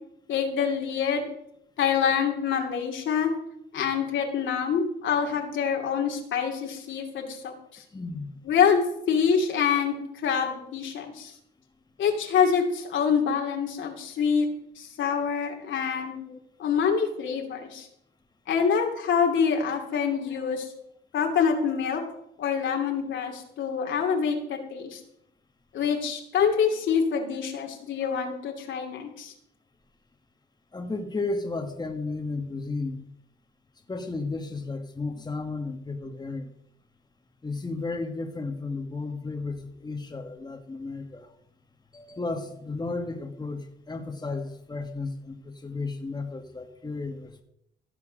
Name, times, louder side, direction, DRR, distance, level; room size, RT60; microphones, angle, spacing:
voice 1, 0.3-1.3 1.8-3.3 3.7-7.8 8.4-11.3 12.0-14.5 14.8-16.2 16.6-17.9 18.5-20.7 21.1-22.0 22.4-25.0 25.7-29.3, left 7 dB, 75° left, 2 dB, 2.8 m, -26 dB
voice 2, 7.9-8.3 16.3-16.4 30.7-33.1 33.9-36.5 37.4-41.3 41.9-47.4, left 3 dB, 20° left, 3 dB, 1.6 m, -33 dB
15.5 x 7.2 x 6.4 m, 0.77 s
cardioid pair, 90°, 20 cm